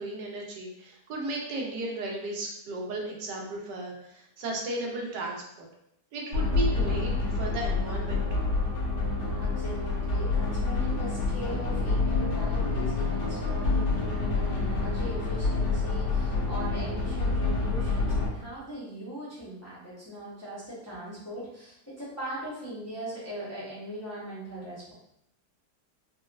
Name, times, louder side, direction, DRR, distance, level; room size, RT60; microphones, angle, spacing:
voice 1, 0.0-5.7 6.1-8.5, right 2 dB, 85° right, -1 dB, 1.4 m, -35 dB
sound 1, 6.3-18.3, left 3 dB, 80° left, 1.7 m, -27 dB
voice 2, 9.3-24.9, equal, 15° left, -9 dB, 0.7 m, -40 dB
4.2 x 2.2 x 2.3 m, 0.77 s
omnidirectional pair, 1.8 m